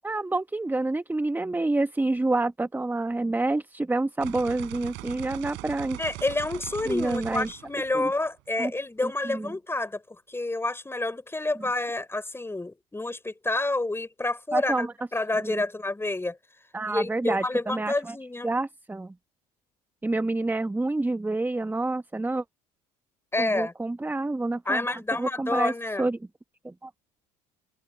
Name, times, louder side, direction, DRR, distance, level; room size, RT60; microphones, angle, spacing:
voice 1, 0.0-6.0 6.9-7.5 7.9-8.1 8.6-8.7 9.0-9.5 14.5-14.9 15.4-15.6 16.7-18.2 18.4-19.1 20.0-22.4 23.4-25.7 26.0-26.2 26.6-26.9, right 2 dB, 10° right, 1.3 m, -28 dB
sound 1, 4.2-8.4, right 24 dB, 65° right, 5.4 m, -40 dB
voice 2, 6.0-10.0 10.3-14.9 15.1-16.4 16.9-18.5 23.3-23.7 24.6-26.1, left 2 dB, 10° left, 5.0 m, -29 dB
hypercardioid pair, 65°, 20 cm